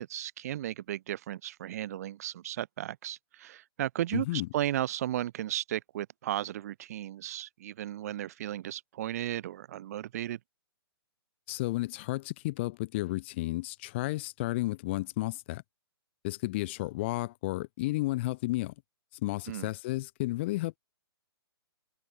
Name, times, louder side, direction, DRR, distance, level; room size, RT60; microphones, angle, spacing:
voice 1, 0.0-10.4 19.5-19.7, right 12 dB, 40° right, 0.6 m, -35 dB
voice 2, 4.1-4.5 11.5-15.6 16.2-18.7 19.2-20.8, left 19 dB, 25° left, 0.6 m, -32 dB
hypercardioid pair, 160°, 13 cm